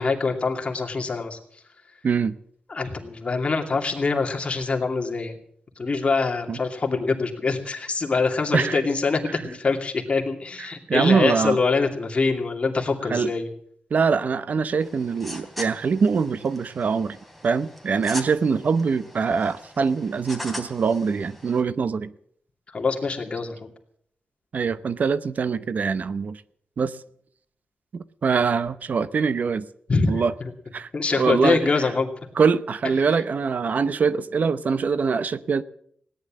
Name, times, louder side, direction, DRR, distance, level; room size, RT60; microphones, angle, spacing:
voice 1, 0.0-1.4 2.7-5.4 5.8-13.5 22.7-23.7 29.9-30.1 30.4-30.5 30.9-32.1, left 4 dB, 40° left, 2.6 m, -24 dB
voice 2, 10.6-11.6 13.1-13.3 13.9-17.2 17.4-22.1 24.5-26.4 26.8-27.0 27.9-29.6 30.1-30.3 30.7-31.8 32.3-35.6, right 5 dB, 60° right, 0.7 m, -23 dB
sound 1, 14.8-21.6, left 1 dB, ahead, 3.0 m, -40 dB
17.0 x 10.5 x 7.5 m
wide cardioid pair, 105°, 3 cm